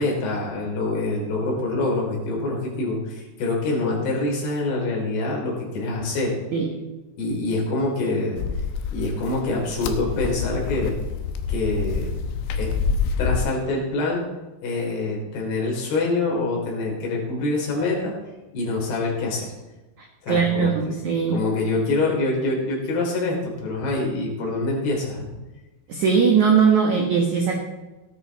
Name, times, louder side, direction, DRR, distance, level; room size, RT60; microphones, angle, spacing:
voice 1, 0.0-6.4 7.2-8.4 8.9-11.0 11.5-12.1 12.5-12.7 13.2-14.2 14.6-18.1 18.5-19.5 20.2-20.9 21.3-25.3, left 2 dB, 55° left, -2 dB, 5.2 m, -25 dB
sound 1, 8.4-13.4, left 5 dB, 80° left, 3.3 m, -27 dB
voice 2, 20.0-21.4 25.9-27.6, right 6 dB, 90° right, 0 dB, 1.6 m, -20 dB
17.5 x 9.9 x 4.1 m, 1.1 s
omnidirectional pair, 5.7 m